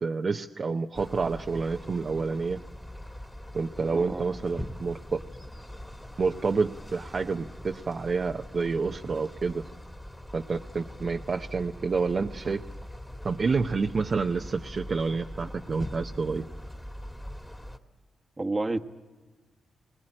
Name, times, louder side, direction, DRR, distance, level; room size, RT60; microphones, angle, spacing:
voice 1, 0.0-2.6 3.5-5.2 6.2-9.6 10.3-12.6 13.2-16.5, right 4 dB, 50° right, 4 dB, 0.7 m, -29 dB
sound 1, 0.9-17.8, equal, 10° left, 2.0 m, -42 dB
voice 2, 3.8-4.4 18.4-18.8, right 2 dB, 25° right, 5 dB, 1.2 m, -30 dB
20.5 x 19.0 x 8.8 m, 1.3 s
supercardioid pair, 55°, 0 cm